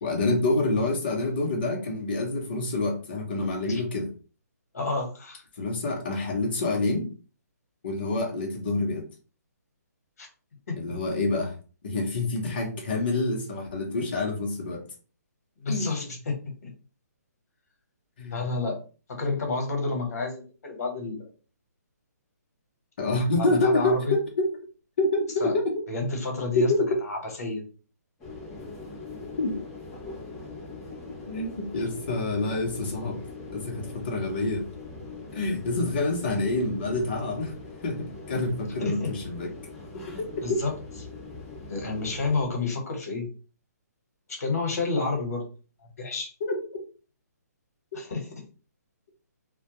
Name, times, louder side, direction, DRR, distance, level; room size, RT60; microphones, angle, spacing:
voice 1, 0.0-4.1 5.6-7.1 7.8-9.1 10.8-11.5 11.8-14.9 15.7-16.2 18.2-18.4 23.0-24.5 25.0-25.7 26.5-27.0 29.4-29.6 31.3-33.2 33.5-34.6 35.3-37.5 37.8-39.5 40.2-40.6 46.4-46.5, left 2 dB, 35° left, 0 dB, 0.7 m, -27 dB
voice 2, 4.7-5.4 10.2-10.3 10.7-10.8 15.6-16.3 16.6-16.7 18.3-18.8 19.1-21.3 23.4-24.2 25.4-25.5 25.9-26.7 27.0-27.6 38.8-39.1 40.4-40.7 41.7-43.3 44.3-45.5 46.0-46.3 47.9-48.3, left 3 dB, 60° left, 2 dB, 1.1 m, -30 dB
sound 1, 28.2-42.4, left 3 dB, 5° left, 0.5 m, -42 dB
2.2 x 2.1 x 2.9 m, 0.36 s
hypercardioid pair, 175°, 9 cm